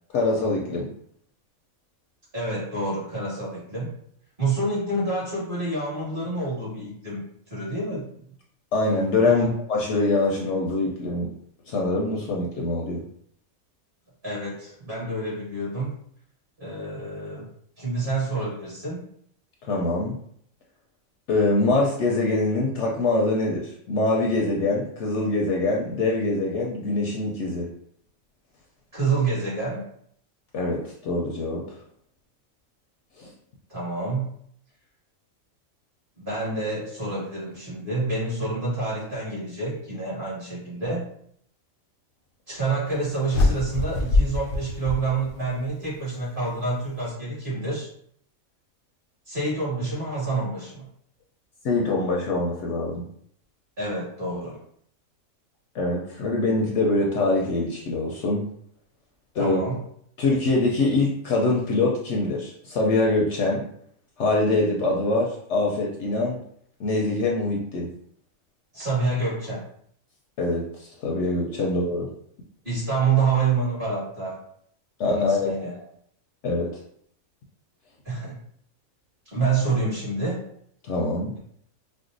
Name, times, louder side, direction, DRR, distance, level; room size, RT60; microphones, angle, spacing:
voice 1, 0.1-0.9 8.7-11.3 11.7-13.0 19.6-20.2 21.3-27.7 30.5-31.8 33.2-33.3 51.6-53.0 55.7-58.5 59.3-59.6 60.2-63.7 64.2-66.4 66.8-67.9 70.4-72.1 75.0-75.5 76.4-76.7 80.8-81.3, left 2 dB, 65° left, -1 dB, 0.8 m, -24 dB
voice 2, 2.3-4.0 4.4-8.2 9.2-9.5 14.2-16.0 16.6-17.5 17.8-19.0 28.9-29.9 33.7-34.3 36.2-41.1 42.5-47.9 49.3-50.8 53.8-54.6 59.4-59.8 68.7-69.7 71.6-71.7 72.6-74.4 75.0-75.8 78.1-78.4 79.3-80.5, right 3 dB, 40° right, -7 dB, 1.8 m, -28 dB
sound 1, 43.3-45.7, left 2 dB, 90° left, 1.1 m, -24 dB
4.5 x 2.1 x 2.5 m, 0.65 s
omnidirectional pair, 1.5 m